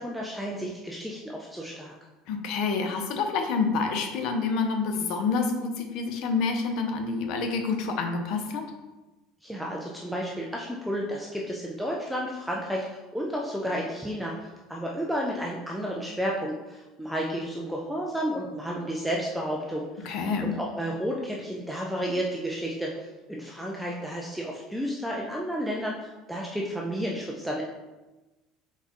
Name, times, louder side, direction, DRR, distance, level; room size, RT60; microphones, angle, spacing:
voice 1, 0.0-1.9 9.4-14.3 14.7-20.1 20.4-27.6, equal, ahead, -2 dB, 0.3 m, -32 dB
voice 2, 2.3-8.6 20.0-20.5, left 4 dB, 50° left, 5 dB, 0.6 m, -28 dB
4.0 x 4.0 x 2.9 m, 1.1 s
cardioid pair, 180°, 0 cm